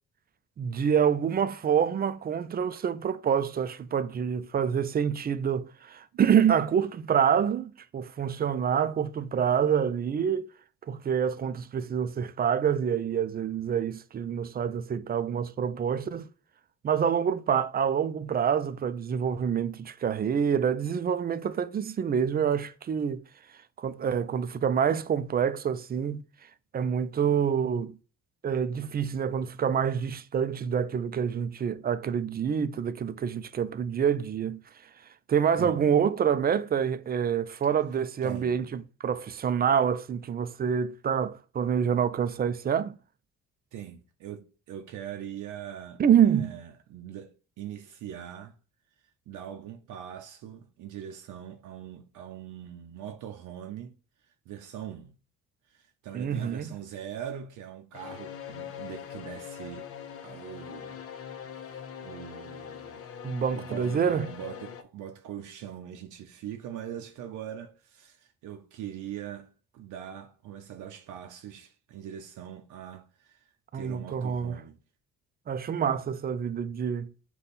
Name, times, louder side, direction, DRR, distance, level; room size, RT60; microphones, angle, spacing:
voice 1, 0.6-10.5 10.9-16.3 16.8-23.2 23.8-26.2 26.7-28.0 28.4-34.6 35.3-43.0 46.0-46.6 56.1-56.7 63.2-64.3 73.7-74.6 75.5-77.1, right 8 dB, 30° right, 0.4 m, -27 dB
voice 2, 38.2-38.5 43.7-48.6 49.3-53.9 54.5-55.2 55.7-59.9 60.2-61.0 62.0-63.0 63.5-73.5 73.7-74.8, right 10 dB, 80° right, 0.6 m, -42 dB
sound 1, 57.9-64.8, left 8 dB, 50° left, 0.7 m, -42 dB
5.2 x 2.3 x 4.1 m
cardioid pair, 90°, 30 cm